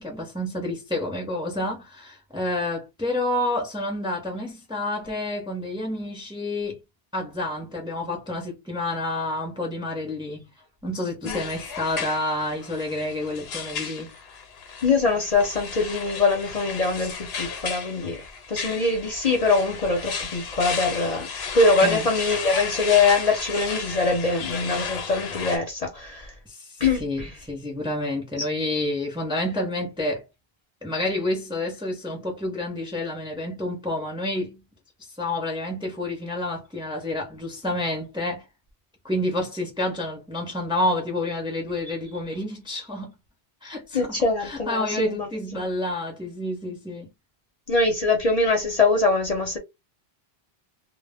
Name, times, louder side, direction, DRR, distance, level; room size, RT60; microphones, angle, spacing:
voice 1, 0.0-6.8 7.1-10.5 10.8-14.1 21.8-22.1 26.5-26.7 27.0-30.2 30.8-34.6 35.2-38.4 39.0-43.1 43.6-47.1, left 1 dB, 5° right, 0.6 m, -29 dB
sound 1, 11.2-25.6, left 6 dB, 75° left, 0.9 m, -34 dB
voice 2, 14.8-18.2 18.5-26.3 26.8-27.3 43.9-45.7 47.7-49.6, left 3 dB, 45° left, 0.7 m, -23 dB
2.1 x 2.0 x 3.4 m
omnidirectional pair, 1.1 m